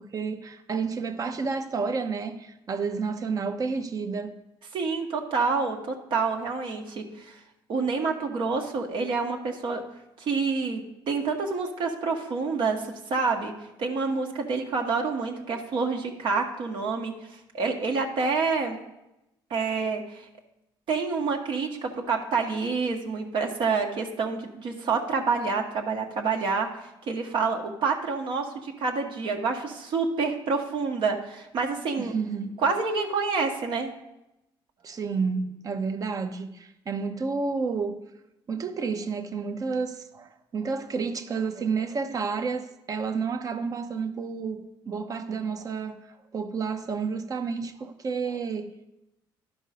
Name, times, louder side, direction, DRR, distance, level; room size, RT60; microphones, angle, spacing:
voice 1, 0.0-4.4 32.0-32.5 34.8-38.0 38.5-46.0 46.3-48.9, right 5 dB, 40° right, 0.8 m, -30 dB
voice 2, 4.7-7.4 7.7-9.8 10.2-13.5 13.8-18.8 19.5-20.3 20.9-26.7 27.1-32.1 32.6-33.9, right 4 dB, 60° right, 1.2 m, -28 dB
11.5 x 5.4 x 4.9 m
cardioid pair, 100°, 10 cm